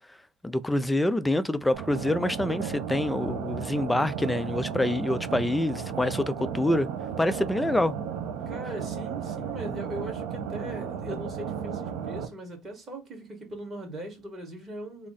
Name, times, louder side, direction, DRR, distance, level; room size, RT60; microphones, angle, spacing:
voice 1, 0.4-6.9 7.2-7.9, left 1 dB, 5° left, 0.3 m, -26 dB
sound 1, 1.7-12.3, right 7 dB, 75° right, 1.1 m, -34 dB
voice 2, 8.4-15.1, right 1 dB, 25° right, 1.6 m, -39 dB
3.5 x 2.1 x 3.9 m
cardioid pair, 125°, 0 cm